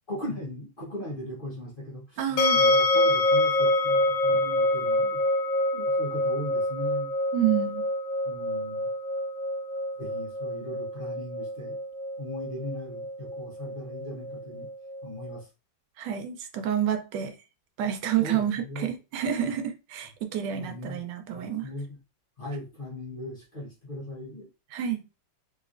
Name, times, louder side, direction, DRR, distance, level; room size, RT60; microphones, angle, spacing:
voice 1, 0.1-5.2 5.7-7.1 8.2-8.9 10.0-11.8 12.2-14.7 15.0-15.5 18.2-18.9 19.4-19.5 20.6-21.0 21.3-22.0 22.4-24.5, left 1 dB, 35° left, 1.1 m, -38 dB
voice 2, 2.2-2.7 7.3-7.9 16.0-17.3 17.8-21.7 24.7-25.1, right 9 dB, 90° right, 1.3 m, -29 dB
sound 1, 2.4-15.3, left 1 dB, 70° left, 1.0 m, -26 dB
3.4 x 3.1 x 2.5 m
omnidirectional pair, 1.9 m